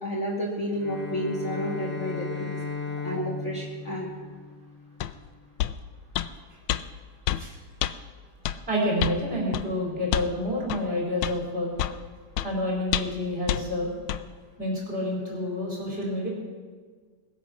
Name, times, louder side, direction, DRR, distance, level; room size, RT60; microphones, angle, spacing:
voice 1, 0.0-2.6 3.0-4.1, equal, 35° left, -4 dB, 2.4 m, -31 dB
Bowed string instrument, 0.7-5.1, left 4 dB, 10° left, 0.5 m, -36 dB
sound 1, 5.0-5.1 5.6-5.8 6.2-6.3 6.7-6.8 7.3-7.4 7.8-7.9 8.5-8.6 9.0-9.2 9.5-9.7 10.1-10.3 10.7-10.8 11.2-11.4 11.8-12.0 12.4-12.5 12.9-13.2 13.5-13.6 14.1-14.2, left 13 dB, 80° left, 1.4 m, -27 dB
voice 2, 8.7-11.7 12.4-13.9 14.6-16.3, left 1 dB, 25° right, -4 dB, 4.9 m, -28 dB
21.0 x 8.5 x 6.2 m, 1.5 s
omnidirectional pair, 2.3 m